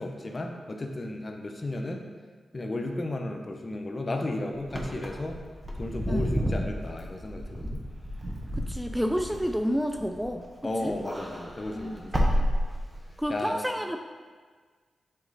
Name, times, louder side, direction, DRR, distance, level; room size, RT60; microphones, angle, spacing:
voice 1, 0.0-2.1 2.5-5.4 5.8-7.8 10.6-12.5 13.3-13.6, left 2 dB, 40° left, 3 dB, 0.7 m, -34 dB
Wind / Car, 4.6-10.5 10.8-13.2, equal, 20° right, 1.2 m, -31 dB
voice 2, 8.6-10.4 10.8-10.9 11.7-12.1 13.2-14.0, equal, ahead, 5 dB, 0.4 m, -29 dB
8.0 x 3.0 x 4.0 m, 1.5 s
cardioid pair, 45°, 0 cm